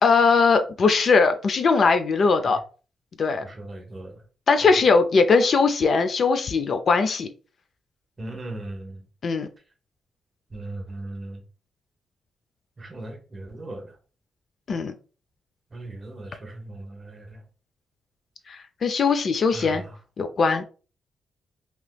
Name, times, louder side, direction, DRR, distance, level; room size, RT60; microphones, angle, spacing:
voice 1, 0.0-2.6 3.2-3.4 4.5-7.3 9.2-9.5 14.7-14.9 18.5-19.8 20.2-20.6, left 4 dB, 45° left, 9 dB, 0.4 m, -20 dB
voice 2, 3.4-4.2 8.2-9.0 10.5-11.4 12.8-13.9 15.7-17.4 19.5-20.0, right 2 dB, 30° right, 3 dB, 0.8 m, -38 dB
3.3 x 2.9 x 2.2 m, 0.36 s
cardioid pair, 135°, 0 cm